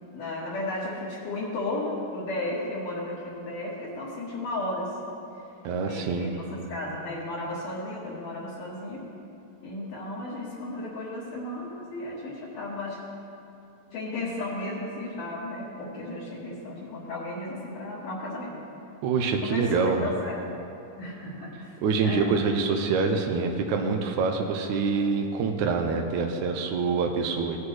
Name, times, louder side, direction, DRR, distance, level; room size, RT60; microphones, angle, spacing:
voice 1, 0.1-5.4 5.9-9.1 9.6-13.0 13.9-18.5 19.4-20.4 21.0-22.3, left 1 dB, 65° left, -8 dB, 2.9 m, -34 dB
voice 2, 5.6-6.3 19.0-20.0 21.8-27.6, right 4 dB, 90° right, 3 dB, 1.7 m, -25 dB
17.5 x 8.3 x 3.2 m, 2.6 s
omnidirectional pair, 4.3 m